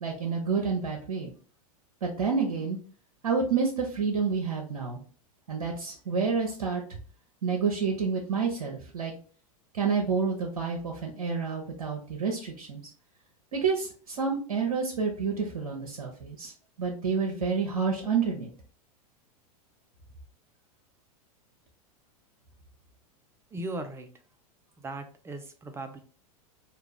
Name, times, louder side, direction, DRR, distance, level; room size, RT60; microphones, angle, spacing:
voice 1, 0.0-1.3 2.0-2.8 3.2-5.0 5.5-6.8 7.4-9.1 9.7-12.8 13.5-16.5 16.8-18.5, right 5 dB, 80° right, 1 dB, 0.8 m, -29 dB
voice 2, 23.5-24.1 24.8-26.0, right 2 dB, 15° right, 7 dB, 0.6 m, -37 dB
3.3 x 2.4 x 3.3 m, 0.40 s
hypercardioid pair, 100°, 19 cm